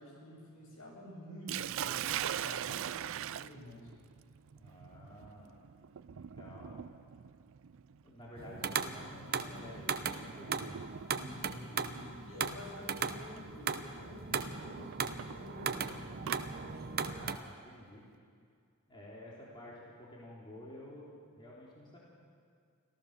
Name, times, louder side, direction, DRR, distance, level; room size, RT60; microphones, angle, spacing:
voice 1, 0.0-3.9 11.1-16.2, left 1 dB, 65° left, -2 dB, 7.0 m, -49 dB
Sink (filling or washing), 1.5-11.4 12.5-12.8 13.4-13.5 14.9-16.4, right 10 dB, 65° right, 0.4 m, -41 dB
voice 2, 4.5-5.6 6.1-6.9 8.0-10.8 16.9-18.0 18.9-21.1 21.4-22.0, left 1 dB, 20° left, -5 dB, 3.5 m, -51 dB
sound 1, 8.4-17.4, right 6 dB, 45° right, 0.8 m, -38 dB
26.5 x 15.0 x 6.7 m, 2.2 s
head